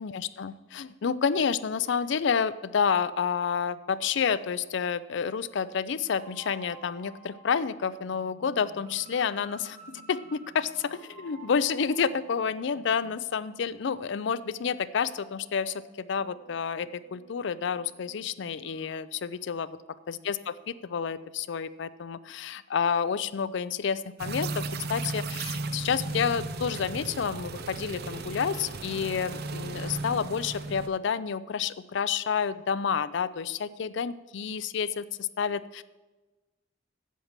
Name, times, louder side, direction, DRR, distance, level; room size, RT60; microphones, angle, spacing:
voice 1, 0.0-19.7 20.1-35.8, left 6 dB, 65° left, 15 dB, 0.4 m, -29 dB
sound 1, 6.1-18.9, right 3 dB, 40° right, 1.6 m, -53 dB
sound 2, 24.2-30.9, right 3 dB, 55° right, 0.6 m, -35 dB
8.3 x 7.3 x 7.3 m, 1.2 s
head